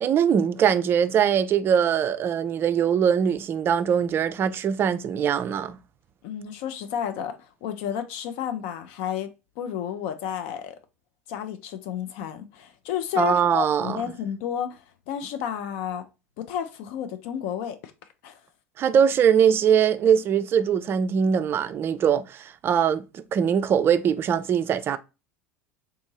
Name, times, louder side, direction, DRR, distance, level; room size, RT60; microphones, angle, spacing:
voice 1, 0.0-5.8 13.2-14.0 18.8-25.0, right 8 dB, 30° right, 0.3 m, -22 dB
voice 2, 6.2-9.3 9.6-10.7 11.3-16.0 16.4-17.9 18.2-18.4, left 8 dB, 55° left, 0.4 m, -31 dB
3.6 x 2.6 x 2.8 m
figure-of-eight pair, 75°, 8 cm